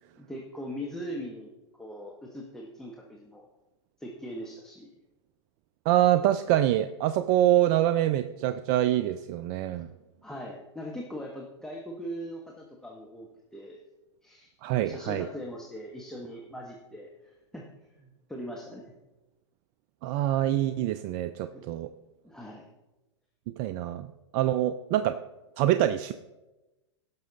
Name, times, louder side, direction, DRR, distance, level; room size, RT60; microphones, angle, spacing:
voice 1, 0.2-1.5 1.8-3.5 4.0-4.9 10.2-13.8 14.2-14.5 14.8-17.7 18.0-18.9 21.5-21.6 22.2-22.7, equal, 5° left, -2 dB, 1.3 m, -40 dB
voice 2, 5.9-9.9 14.6-15.3 20.0-21.9 23.5-25.2 25.6-26.1, right 12 dB, 45° right, 11 dB, 0.5 m, -25 dB
17.0 x 6.2 x 4.0 m, 1.0 s
hypercardioid pair, 105°, 16 cm